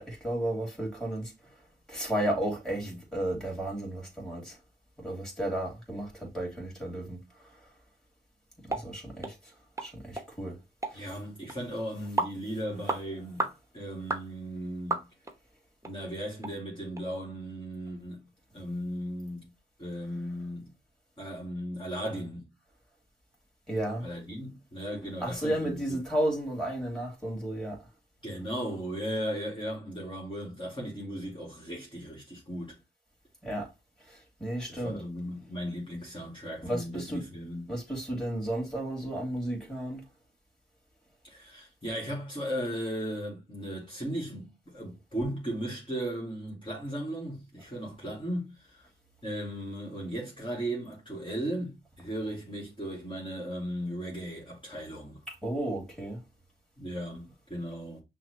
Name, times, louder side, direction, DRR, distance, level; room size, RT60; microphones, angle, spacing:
voice 1, 0.0-1.3 1.9-4.6 5.0-7.2 8.7-9.5 9.8-10.6 10.9-11.1 23.7-24.1 25.2-27.8 33.4-33.7 34.0-35.0 36.6-37.2 37.7-40.0 55.3-56.2, right 1 dB, 5° left, 2.8 m, -33 dB
sound 1, 8.7-8.9 9.2-9.3 9.8-9.9 10.2-10.3 10.8-11.0 11.5-11.6 12.2-12.4 12.9-13.0 13.4-13.6 14.1-14.3 14.9-15.3 15.8-15.9 16.4-16.5 17.0-17.1, right 3 dB, 15° right, 0.9 m, -31 dB
voice 2, 10.9-13.5 13.7-15.1 15.8-18.3 18.5-19.5 19.8-20.7 21.2-22.5 24.0-26.0 28.2-32.8 34.7-37.7 41.2-48.9 49.2-55.2 56.8-58.0, equal, 25° left, 2.3 m, -36 dB
5.8 x 2.5 x 3.0 m
cardioid pair, 65°, 19 cm